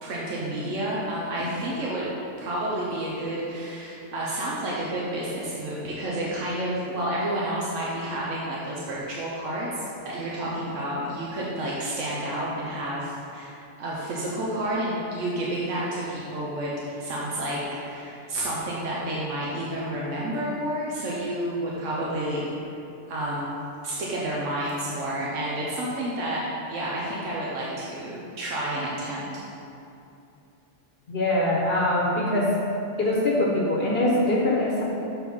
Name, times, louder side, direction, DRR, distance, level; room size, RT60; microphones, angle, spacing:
voice 1, 0.0-2.1 2.4-16.7 17.0-22.5 23.1-23.6 23.8-26.4 26.7-29.3, right 1 dB, 90° right, -5 dB, 1.2 m, -30 dB
voice 2, 31.1-32.5 33.0-34.8, left 1 dB, 55° left, -4 dB, 1.1 m, -23 dB
6.3 x 4.3 x 5.4 m, 2.8 s
omnidirectional pair, 1.3 m